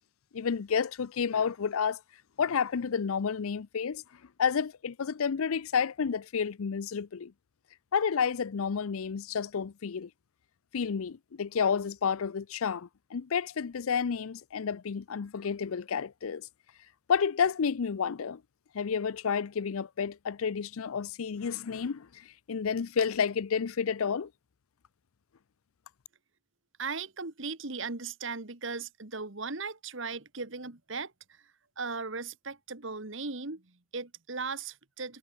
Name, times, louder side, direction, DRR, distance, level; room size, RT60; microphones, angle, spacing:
voice 1, 0.3-2.0 2.4-4.0 4.4-7.3 7.9-10.1 10.7-16.5 17.1-18.4 18.7-24.3, left 6 dB, 80° left, 0.5 m, -30 dB
voice 2, 26.8-31.4 31.8-35.2, right 4 dB, 60° right, 1.8 m, -37 dB
head